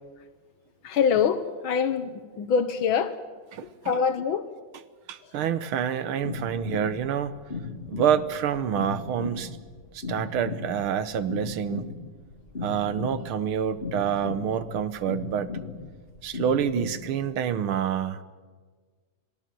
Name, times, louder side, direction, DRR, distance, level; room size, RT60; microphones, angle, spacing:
voice 1, 0.8-3.2 3.6-4.5, left 6 dB, 75° left, 10 dB, 1.7 m, -25 dB
voice 2, 5.1-7.3 7.9-9.5 10.1-11.9 12.6-15.5 16.2-18.2, right 8 dB, 85° right, 13 dB, 1.9 m, -27 dB
sound 1, 6.2-17.0, left 4 dB, 25° left, 2.6 m, -37 dB
26.5 x 18.0 x 7.6 m, 1.5 s
omnidirectional pair, 2.3 m